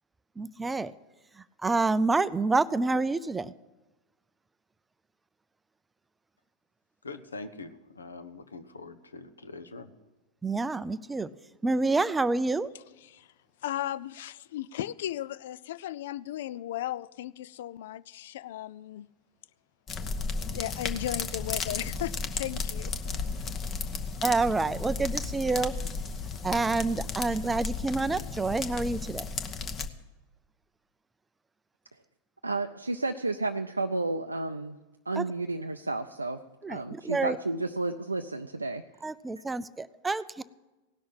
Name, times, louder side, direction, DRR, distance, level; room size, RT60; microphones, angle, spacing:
voice 1, 0.4-0.9 1.6-3.5 10.4-11.3 11.6-12.7 24.2-25.7 26.4-29.3 35.2-35.3 36.6-37.4 39.0-40.4, right 3 dB, 10° right, 0.4 m, -28 dB
voice 2, 7.0-9.9, left 3 dB, 75° left, 0.9 m, -43 dB
voice 3, 13.6-19.1 20.5-23.2, left 12 dB, 55° left, 0.4 m, -36 dB
sound 1, 19.9-29.9, left 4 dB, 25° left, 1.0 m, -34 dB
voice 4, 32.4-34.8 35.1-36.4 36.7-38.8, right 2 dB, 80° right, 0.4 m, -31 dB
17.5 x 6.3 x 8.6 m
figure-of-eight pair, 90°, 0 cm